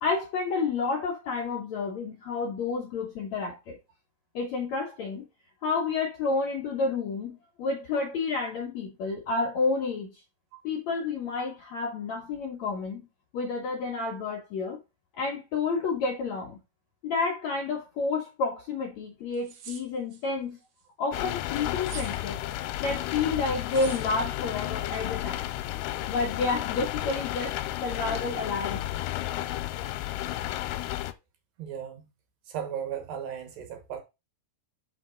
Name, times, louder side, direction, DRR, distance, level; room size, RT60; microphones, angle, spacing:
voice 1, 0.0-3.8 4.3-5.2 5.6-10.2 10.6-13.1 13.3-14.8 15.1-16.6 17.0-20.6 21.0-22.4 22.8-25.5 26.1-27.5 27.8-29.0, left 4 dB, 70° left, 1.8 m, -30 dB
sound 1, 18.9-19.0 19.3-20.2 21.8-22.2 23.7-24.1, right 6 dB, 90° right, 1.4 m, -43 dB
sound 2, 21.1-31.1, left 14 dB, 85° left, 2.7 m, -32 dB
voice 2, 31.6-32.1 32.5-34.0, right 8 dB, 65° right, 2.8 m, -36 dB
6.2 x 5.9 x 3.8 m
omnidirectional pair, 4.7 m